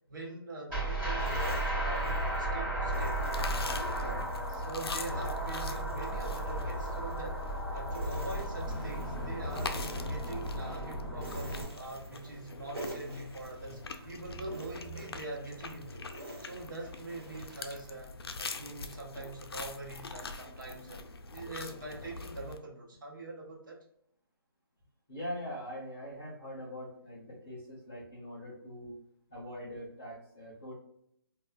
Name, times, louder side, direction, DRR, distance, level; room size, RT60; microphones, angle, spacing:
voice 1, 0.1-3.2 4.5-16.1 16.4-18.1 18.4-21.0 21.3-23.8, right 2 dB, 55° right, -1 dB, 1.0 m, -43 dB
sound 1, 0.7-11.6, right 1 dB, 10° right, 0.9 m, -34 dB
sound 2, 1.2-2.5 2.9-4.5 4.9-7.6 7.9-9.1 9.5-10.7 11.1-12.5 12.7-14.1 14.5-17.9, right 2 dB, 75° right, 1.2 m, -48 dB
sound 3, 3.0-22.6, left 3 dB, 80° left, 0.5 m, -43 dB
voice 2, 25.1-28.9 29.3-30.7, equal, 5° left, -11 dB, 0.3 m, -42 dB
4.1 x 2.4 x 2.2 m, 0.73 s
hypercardioid pair, 175°, 13 cm